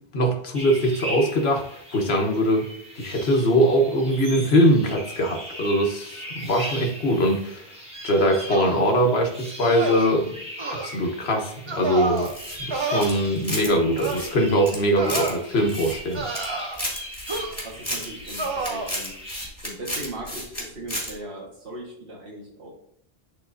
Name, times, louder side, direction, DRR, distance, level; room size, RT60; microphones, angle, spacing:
voice 1, 0.0-2.7 2.9-7.7 8.0-10.3 10.6-12.3 12.7-16.3, equal, 75° left, 3 dB, 1.4 m, -22 dB
sound 1, 0.5-19.5, equal, 5° right, 1.4 m, -39 dB
sound 2, 8.5-8.9 9.6-10.1 10.6-10.9 11.7-12.3 12.7-13.1 14.0-14.3 15.0-15.4 16.1-16.9 17.3-17.7 18.4-18.9, right 3 dB, 30° right, 0.7 m, -29 dB
sound 3, 12.2-13.7 14.0-15.3 15.7-16.5 16.7-20.6 20.9-21.1, equal, 15° left, 2.2 m, -32 dB
voice 2, 17.3-19.1 19.6-22.7, right 1 dB, 60° right, -4 dB, 1.7 m, -38 dB
10.5 x 4.0 x 2.7 m, 0.68 s
omnidirectional pair, 1.1 m